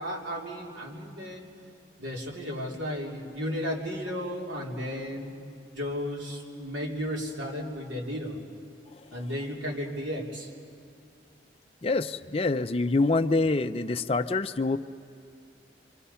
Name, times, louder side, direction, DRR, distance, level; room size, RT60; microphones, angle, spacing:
voice 1, 0.0-1.5 2.0-5.3 5.7-8.4 9.1-10.5, equal, 80° right, -2 dB, 3.4 m, -34 dB
voice 2, 11.8-14.8, left 3 dB, 30° left, 8 dB, 0.5 m, -26 dB
28.0 x 24.0 x 5.7 m, 2.4 s
head